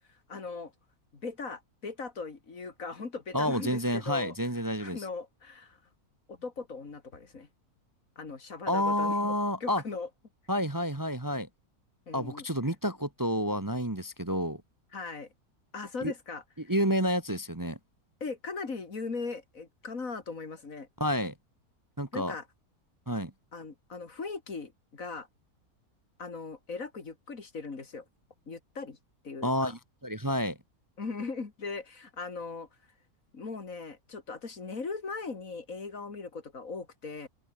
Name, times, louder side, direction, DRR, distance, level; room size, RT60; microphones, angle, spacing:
voice 1, 0.1-0.7 1.1-4.3 4.7-5.8 6.3-7.5 8.2-9.3 9.6-10.1 12.1-12.8 14.9-15.3 15.7-16.7 18.2-20.9 22.1-22.5 23.5-25.3 26.2-28.0 28.5-29.0 29.2-29.7 31.0-32.7 33.3-37.3, left 4 dB, 60° left, 2.9 m, -39 dB
voice 2, 3.3-5.0 8.7-9.8 10.5-11.5 12.1-14.6 16.0-16.1 16.7-17.8 21.0-21.3 22.0-22.3 23.1-23.3 29.4-30.6, equal, 15° right, 1.3 m, -29 dB
open air
omnidirectional pair, 1.6 m